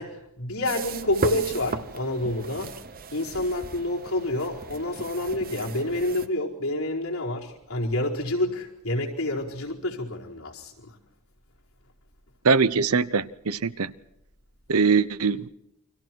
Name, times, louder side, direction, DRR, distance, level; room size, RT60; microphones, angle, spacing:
voice 1, 0.0-2.8 3.1-11.0, left 1 dB, 80° left, -3 dB, 4.7 m, -28 dB
sound 1, 0.6-6.3, right 3 dB, 40° right, 1.0 m, -36 dB
voice 2, 12.4-13.9 14.7-15.5, right 5 dB, 90° right, 16 dB, 0.9 m, -22 dB
29.5 x 24.5 x 4.7 m, 0.85 s
head